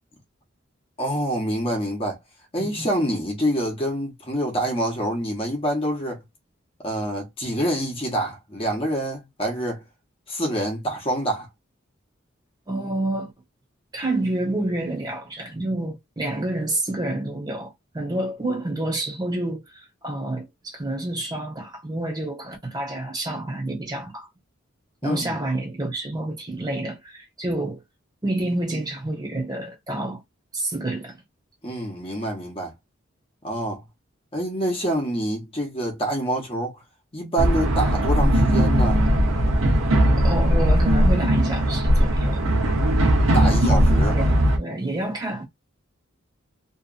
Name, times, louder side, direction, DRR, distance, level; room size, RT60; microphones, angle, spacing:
voice 1, 1.0-2.2 2.5-6.2 6.8-9.8 10.3-11.5 25.0-25.4 31.6-32.7 33.4-33.8 34.3-36.8 37.1-39.0 43.3-44.2, right 1 dB, 30° left, 1.0 m, -26 dB
voice 2, 12.7-13.3 13.9-24.3 25.0-27.8 28.2-30.2 30.5-31.2 40.2-42.5 44.1-45.4, right 1 dB, 20° right, 1.2 m, -28 dB
sound 1, 37.4-44.6, equal, 90° right, 0.8 m, -19 dB
2.7 x 2.5 x 2.4 m
head